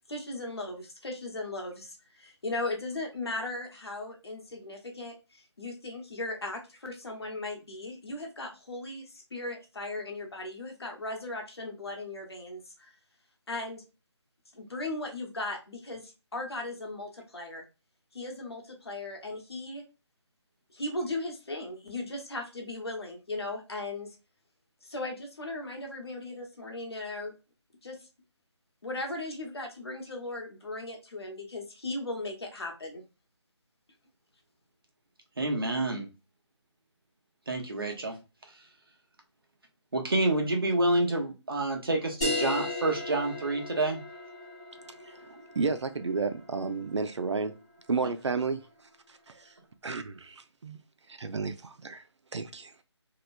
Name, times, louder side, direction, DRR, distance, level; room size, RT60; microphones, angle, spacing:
voice 1, 0.1-13.0 13.5-13.8 14.5-17.6 18.1-19.8 20.7-24.2 24.8-27.3 27.8-28.1 28.8-33.0, left 2 dB, 60° left, 1.1 m, -37 dB
voice 2, 35.4-36.1 37.5-38.2 39.9-44.0, right 2 dB, 50° right, 0.8 m, -28 dB
sound 1, 42.2-47.3, left 2 dB, 5° left, 0.8 m, -36 dB
voice 3, 44.9-47.5 47.9-48.6 49.4-49.5 49.8-50.8 51.1-52.0 52.3-52.7, right 4 dB, 75° right, 0.5 m, -32 dB
2.9 x 2.1 x 2.4 m
figure-of-eight pair, 180°, 15 cm